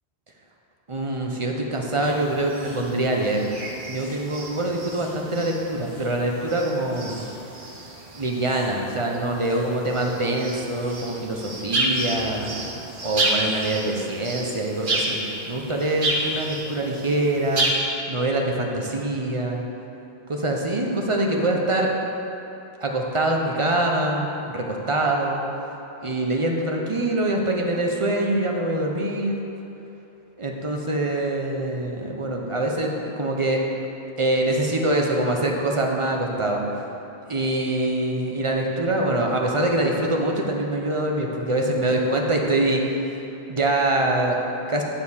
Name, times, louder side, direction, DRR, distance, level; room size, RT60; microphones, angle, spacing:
voice 1, 0.9-3.5 3.9-7.3 8.1-12.5 13.0-15.2 15.4-17.7 18.1-19.6 20.3-21.9 22.8-25.4 26.0-29.4 30.4-33.6 34.2-36.6 37.3-42.8 43.5-44.8, right 1 dB, 30° right, 0 dB, 0.8 m, -24 dB
sound 1, 2.0-17.7, right 2 dB, 50° right, 1.2 m, -31 dB
9.6 x 4.4 x 7.1 m, 3.0 s
omnidirectional pair, 1.1 m